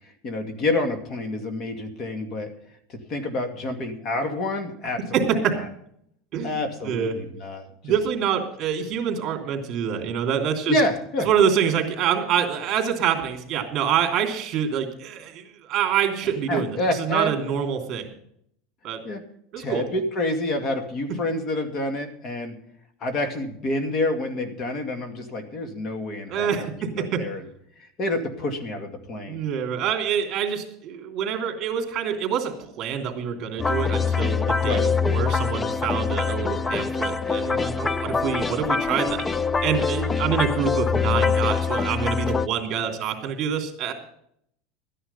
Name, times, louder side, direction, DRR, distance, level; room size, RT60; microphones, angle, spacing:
voice 1, 0.2-2.5 3.1-5.0 6.4-7.9 10.7-11.3 16.5-17.3 19.0-19.2 19.6-22.6 23.0-26.7 26.9-27.4 28.0-29.4 34.6-34.8, left 2 dB, 35° left, 6 dB, 2.2 m, -28 dB
voice 2, 5.1-5.6 6.3-6.6 6.8-7.1 7.8-10.8 11.2-18.1 18.8-19.0 19.5-19.8 26.3-27.2 29.3-39.3 39.6-43.9, right 8 dB, 40° right, 4 dB, 3.0 m, -26 dB
sound 1, 33.6-42.5, left 5 dB, 15° left, 0.4 m, -24 dB
14.0 x 10.0 x 5.6 m, 0.69 s
supercardioid pair, 140°, 0 cm